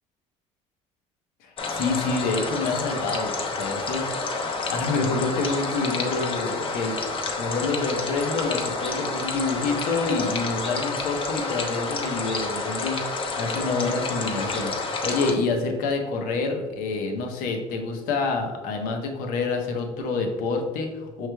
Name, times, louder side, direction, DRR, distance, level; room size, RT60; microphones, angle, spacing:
voice 1, 1.4-4.1 4.6-7.0 7.4-21.3, left 3 dB, 75° left, 3 dB, 0.8 m, -27 dB
sound 1, 1.6-15.3, left 3 dB, 40° left, 0.7 m, -29 dB
5.5 x 3.2 x 2.3 m, 1.3 s
supercardioid pair, 95°, 14 cm